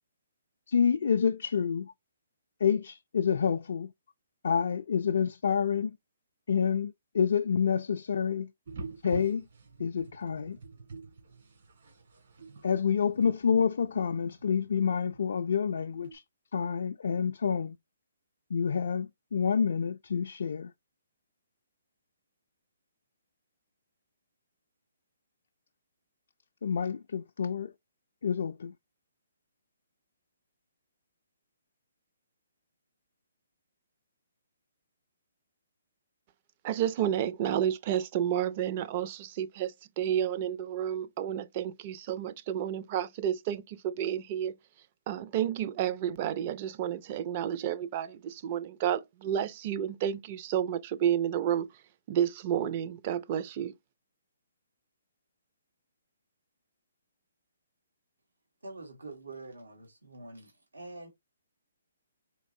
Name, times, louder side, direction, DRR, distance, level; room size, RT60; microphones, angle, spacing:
voice 1, 0.7-1.9 2.6-3.9 4.4-6.0 6.5-8.5 9.0-9.5 9.8-10.6 12.6-16.2 16.5-17.8 18.5-20.7 26.6-27.7 28.2-28.7, left 7 dB, 65° left, 0.3 m, -28 dB
sound 1, 8.7-16.2, right 3 dB, 60° right, 2.1 m, -47 dB
voice 2, 36.6-44.5 45.1-51.7 52.1-53.7, right 10 dB, 40° right, 0.5 m, -31 dB
voice 3, 58.6-61.1, right 2 dB, 90° right, 1.3 m, -45 dB
4.4 x 3.0 x 2.6 m
hypercardioid pair, 140°, 0 cm